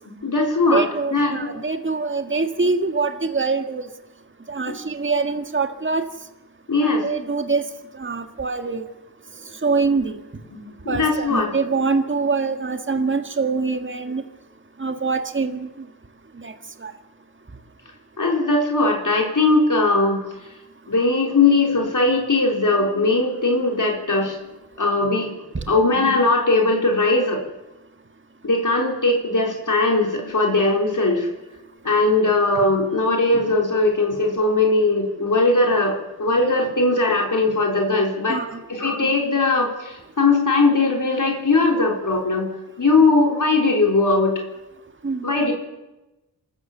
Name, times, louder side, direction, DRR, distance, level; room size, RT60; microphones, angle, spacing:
voice 1, 0.1-0.8 1.1-1.6 6.7-7.1 10.5-11.5 18.2-20.2 20.9-24.4 24.8-25.4 25.7-27.4 28.4-31.3 31.8-42.5 42.8-44.3 45.2-45.5, left 3 dB, 50° left, 1 dB, 4.2 m, -19 dB
voice 2, 0.7-3.8 4.5-6.0 6.8-7.6 8.0-8.8 9.6-10.1 10.9-14.2 14.8-15.7 16.4-16.5 16.8-16.9 25.5-25.6 38.3-38.6 45.0-45.3, right 4 dB, 30° right, 7 dB, 1.6 m, -24 dB
26.5 x 13.5 x 7.4 m, 1.0 s
wide cardioid pair, 75°, 40 cm